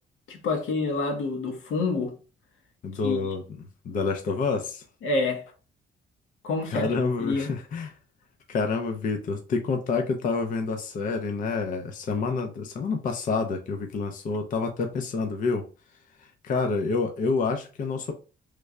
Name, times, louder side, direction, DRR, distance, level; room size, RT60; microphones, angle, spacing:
voice 1, 0.3-2.1 3.0-3.3 5.0-5.4 6.4-6.9 7.2-7.5, left 3 dB, 80° left, 0.9 m, -27 dB
voice 2, 2.8-4.8 6.7-7.9 8.5-15.6 16.2-18.1, left 4 dB, 40° left, 0.5 m, -28 dB
3.2 x 2.2 x 3.6 m
cardioid pair, 160°, 20 cm